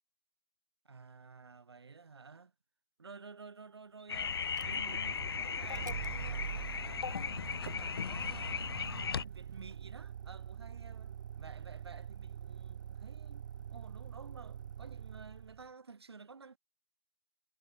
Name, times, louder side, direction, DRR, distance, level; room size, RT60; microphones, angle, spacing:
voice 1, 0.8-2.5 3.0-7.3 7.6-16.6, right 4 dB, 80° right, 4.0 m, -53 dB
sound 1, 4.1-9.2, left 6 dB, 70° left, 1.2 m, -37 dB
Motor vehicle (road), 4.5-15.7, right 9 dB, 50° right, 0.5 m, -44 dB
hypercardioid pair, 155°, 13 cm